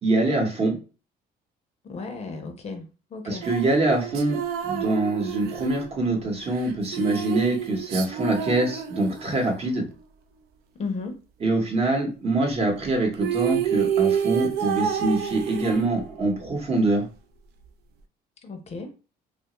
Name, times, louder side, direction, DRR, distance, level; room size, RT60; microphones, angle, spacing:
voice 1, 0.0-0.7 3.3-4.4 4.6-9.8 11.4-17.1, right 2 dB, 35° right, 0.9 m, -24 dB
voice 2, 1.8-3.4 10.8-11.2 18.4-18.9, left 4 dB, 40° left, 0.5 m, -34 dB
sound 1, 3.4-9.6 12.8-12.9 13.1-16.3, right 9 dB, 70° right, 0.4 m, -29 dB
2.9 x 2.2 x 2.9 m
cardioid pair, 110°, 17 cm